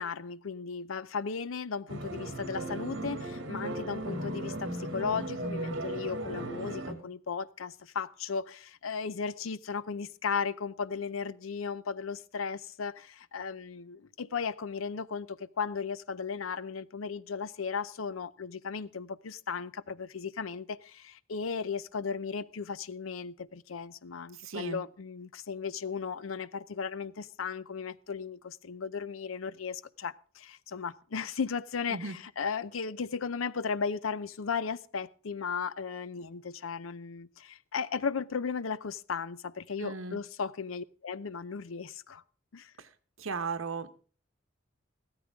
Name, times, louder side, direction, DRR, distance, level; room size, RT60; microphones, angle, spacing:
voice 1, 0.0-42.2 42.5-42.7, left 5 dB, 85° left, 0.6 m, -36 dB
sound 1, 1.9-6.9, right 1 dB, 60° right, 2.4 m, -36 dB
voice 2, 24.4-24.8 31.9-32.2 39.8-40.2 42.8-42.9 43.2-43.9, right 4 dB, 90° right, 1.1 m, -36 dB
15.0 x 13.5 x 3.6 m
head